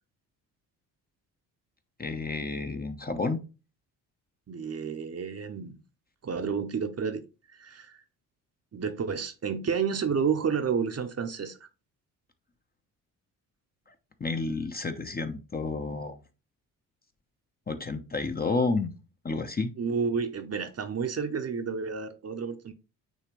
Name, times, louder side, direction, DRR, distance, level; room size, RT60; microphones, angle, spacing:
voice 1, 2.0-3.4 14.2-16.2 17.7-18.9 19.2-19.7, left 3 dB, 20° left, 0.9 m, -30 dB
voice 2, 4.5-5.8 6.2-7.2 7.5-8.0 8.7-11.6 19.8-22.7, right 6 dB, 30° right, 0.9 m, -30 dB
9.2 x 3.3 x 3.1 m
hypercardioid pair, 45°, 47 cm